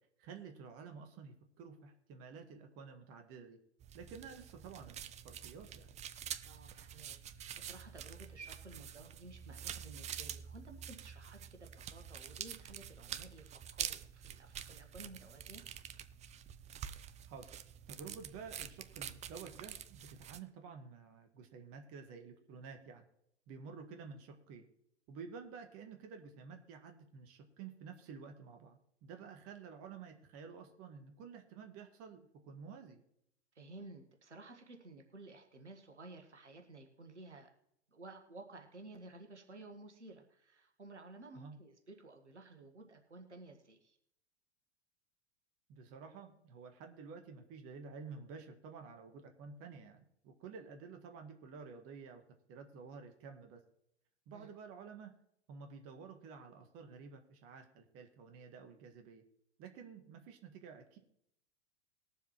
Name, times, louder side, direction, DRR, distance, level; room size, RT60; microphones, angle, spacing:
voice 1, 0.2-3.6 3.9-5.9 17.2-17.5 17.9-23.0 23.5-24.6 25.1-33.0 41.3-41.6 45.7-52.2 52.5-53.6 54.3-55.1 55.5-59.2 59.6-61.0, right 5 dB, 40° right, 5 dB, 1.7 m, -51 dB
sound 1, 3.8-20.4, right 9 dB, 20° right, 0.5 m, -47 dB
voice 2, 6.4-15.6 33.5-37.5 37.9-44.0 54.3-54.5, right 2 dB, 90° right, 4 dB, 1.5 m, -54 dB
20.5 x 7.3 x 3.0 m, 0.74 s
figure-of-eight pair, 90°, 34 cm